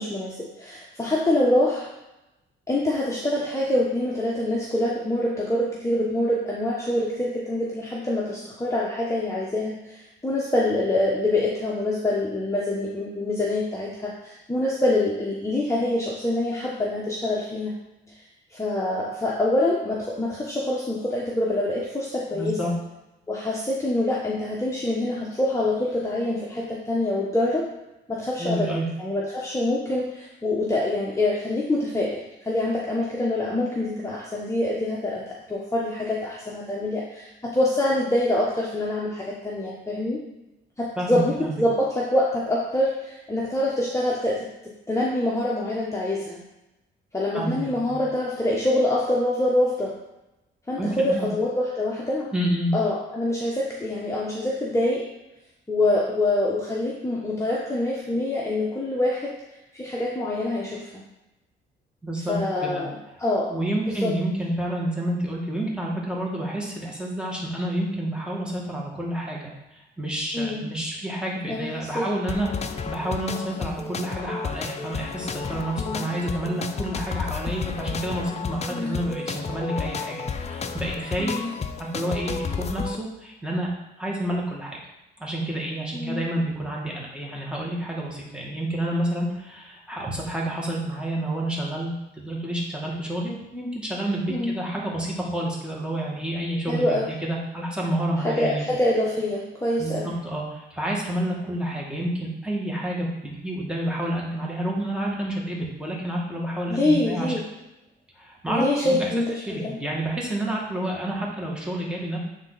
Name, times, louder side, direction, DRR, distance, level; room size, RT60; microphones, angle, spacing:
voice 1, 0.0-1.9 2.7-17.7 18.5-22.7 23.3-27.7 28.1-40.2 40.8-46.4 47.1-50.0 50.7-52.3 52.7-55.0 55.7-59.3 59.7-61.0 62.3-63.5 64.0-64.1 70.3-70.6 71.5-72.0 75.8-76.1 78.7-79.0 81.2-81.5 85.9-86.2 94.3-94.5 96.7-97.1 98.2-100.1 106.7-107.4 108.5-109.8, left 1 dB, 15° left, -4 dB, 1.1 m, -25 dB
voice 2, 22.3-22.7 28.4-28.9 41.0-41.6 47.3-48.0 50.8-51.3 52.3-52.7 62.0-62.8 63.5-81.4 81.8-83.7 84.0-84.8 85.2-98.6 99.8-107.3 108.2-109.1 109.5-112.2, right 1 dB, 5° right, -3 dB, 2.0 m, -29 dB
sound 1, 72.3-83.0, left 5 dB, 35° left, 0.5 m, -32 dB
8.7 x 3.8 x 4.1 m, 0.95 s
cardioid pair, 90°, 20 cm